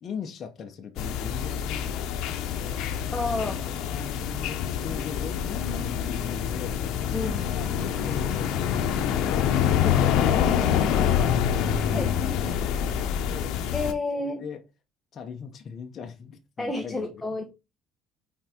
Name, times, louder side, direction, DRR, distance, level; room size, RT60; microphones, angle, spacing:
voice 1, 0.0-2.8 3.3-6.8 7.5-9.4 9.8-11.4 11.8-13.0 13.3-13.6 14.2-14.6 15.1-17.4, left 6 dB, 40° left, 1.1 m, -40 dB
sound 1, 1.0-13.9, left 9 dB, 75° left, 0.9 m, -26 dB
voice 2, 3.1-3.7 7.1-7.5 9.8-10.0 11.9-12.1 13.7-14.4 16.6-17.4, left 2 dB, 10° left, 1.1 m, -30 dB
5.8 x 4.6 x 4.5 m
cardioid pair, 150°, 0 cm